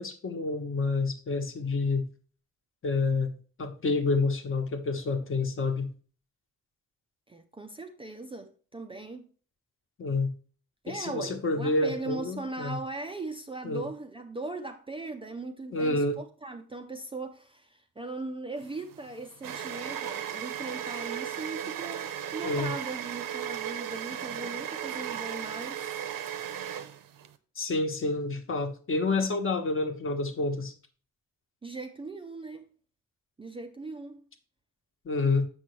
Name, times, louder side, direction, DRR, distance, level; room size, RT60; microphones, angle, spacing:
voice 1, 0.0-2.1 2.8-3.3 3.6-5.9 10.0-10.3 10.9-12.8 13.6-13.9 15.7-16.2 22.4-22.7 27.6-30.7 35.0-35.5, left 3 dB, 40° left, 1.1 m, -28 dB
voice 2, 7.3-9.3 10.8-25.9 31.6-32.7 33.4-34.3, right 3 dB, 15° right, 0.4 m, -39 dB
sound 1, 18.6-27.3, right 10 dB, 80° right, 0.8 m, -36 dB
7.8 x 6.0 x 3.1 m
wide cardioid pair, 175°, 33 cm